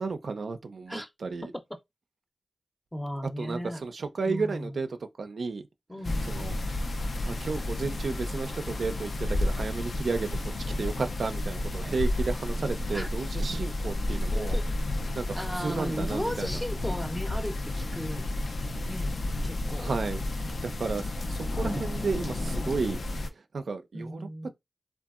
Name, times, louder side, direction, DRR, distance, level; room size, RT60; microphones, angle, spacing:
voice 1, 0.0-1.5 3.4-4.9 5.2-5.6 6.3-6.5 7.2-10.3 10.8-14.6 15.2-15.3 15.6-16.5 19.8-20.3 20.6-23.0 23.5-24.5, right 4 dB, 75° right, 0.3 m, -32 dB
voice 2, 2.9-3.8 4.3-4.8 5.9-6.3 12.9-13.1 14.3-14.7 15.3-18.3 18.9-19.1 19.4-19.9 23.9-24.5, equal, 10° left, 0.5 m, -35 dB
sound 1, 6.0-23.3, left 1 dB, 70° left, 0.4 m, -31 dB
2.7 x 2.3 x 2.3 m
cardioid pair, 55°, 0 cm